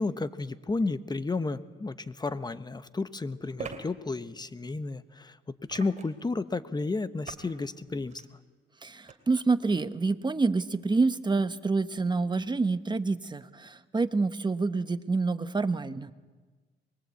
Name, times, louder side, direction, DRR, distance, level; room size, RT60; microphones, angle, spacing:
voice 1, 0.0-8.2, left 3 dB, 20° left, 13 dB, 1.1 m, -32 dB
sound 1, 2.1-2.2 3.6-3.8 5.7-6.2 7.2-7.5 8.0-8.3 9.1-9.2, right 5 dB, 40° right, 2.5 m, -41 dB
voice 2, 8.8-16.1, right 3 dB, 20° right, 11 dB, 1.2 m, -27 dB
24.0 x 22.5 x 8.4 m, 1.3 s
cardioid pair, 90°, 20 cm